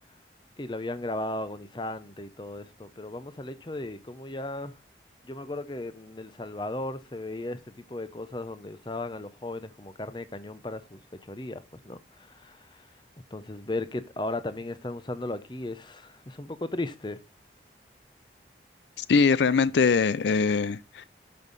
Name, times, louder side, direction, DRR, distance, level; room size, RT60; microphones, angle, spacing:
voice 1, 0.6-4.7 5.2-12.8 13.3-17.2, left 2 dB, 25° left, 0.7 m, -36 dB
voice 2, 19.0-21.1, left 5 dB, 75° left, 0.4 m, -22 dB
12.0 x 5.6 x 4.0 m
head